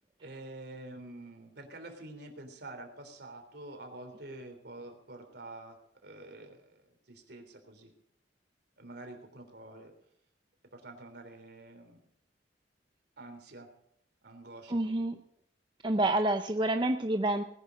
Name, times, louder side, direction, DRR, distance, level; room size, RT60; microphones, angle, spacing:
voice 1, 0.2-5.8 6.0-6.8 7.1-7.9 8.8-9.9 10.7-12.0 13.2-13.7 14.2-15.0, right 2 dB, 60° right, 5 dB, 3.5 m, -47 dB
voice 2, 14.7-15.2 15.8-17.4, right 1 dB, 25° right, 6 dB, 0.7 m, -28 dB
19.0 x 11.0 x 5.1 m, 0.75 s
head